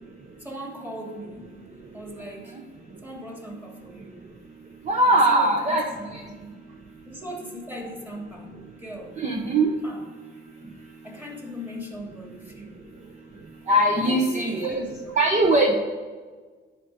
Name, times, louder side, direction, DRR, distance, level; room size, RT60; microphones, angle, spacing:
voice 1, 0.4-1.5 1.9-2.5 3.0-4.2 5.1-6.5 7.1-8.5 8.8-9.2 9.8-10.0 11.0-12.8 13.9-15.2, equal, 10° right, -1 dB, 2.8 m, -38 dB
voice 2, 4.8-5.8 6.1-6.2 9.2-9.7 13.7-14.8 15.2-15.8, right 1 dB, 35° right, 1 dB, 1.1 m, -20 dB
10.0 x 4.6 x 6.5 m, 1.5 s
cardioid pair, 90°, 20 cm